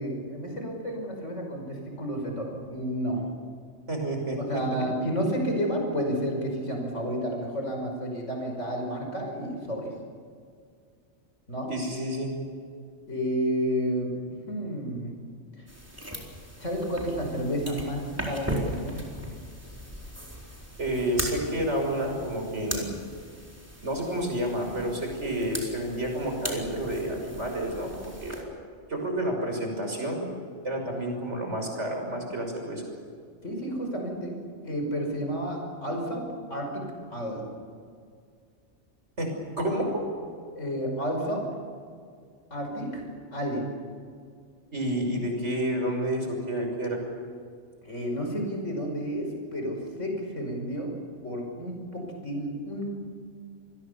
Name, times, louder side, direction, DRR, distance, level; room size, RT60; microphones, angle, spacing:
voice 1, 0.0-3.3 4.4-9.9 11.5-11.8 13.1-14.1 14.5-15.1 16.6-19.1 33.4-34.4 34.6-36.2 36.5-37.5 40.5-41.5 42.5-43.0 43.3-43.7 47.8-50.9 51.2-52.9, equal, 90° left, 2 dB, 6.1 m, -31 dB
voice 2, 3.9-4.6 11.7-12.3 20.8-23.0 23.8-28.3 28.9-30.2 30.6-32.8 39.2-40.0 44.7-47.0, right 1 dB, 70° right, 2 dB, 6.4 m, -30 dB
sound 1, 15.7-28.4, equal, 10° right, 4.3 m, -38 dB
28.0 x 20.5 x 7.0 m, 2.1 s
omnidirectional pair, 1.2 m